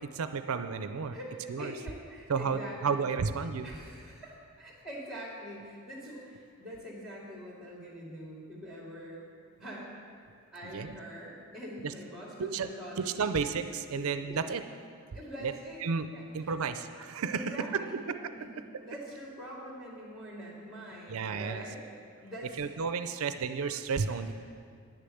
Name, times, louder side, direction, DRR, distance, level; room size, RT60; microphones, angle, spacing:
voice 1, 0.0-1.2 1.5-1.7 2.3-3.7 10.7-11.0 11.8-11.9 12.4-12.7 13.0-14.6 15.4-15.5 15.8-16.1 16.3-18.3 21.1-21.6 22.6-24.3, right 5 dB, 75° right, 10 dB, 0.5 m, -32 dB
voice 2, 1.1-3.1 3.6-9.2 9.6-10.0 10.5-13.5 14.0-14.4 15.1-15.8 16.1-16.3 17.3-18.0 18.3-18.5 18.8-21.8 22.2-22.6 24.1-24.2, equal, ahead, -4 dB, 2.5 m, -44 dB
10.0 x 6.7 x 7.7 m, 2.2 s
head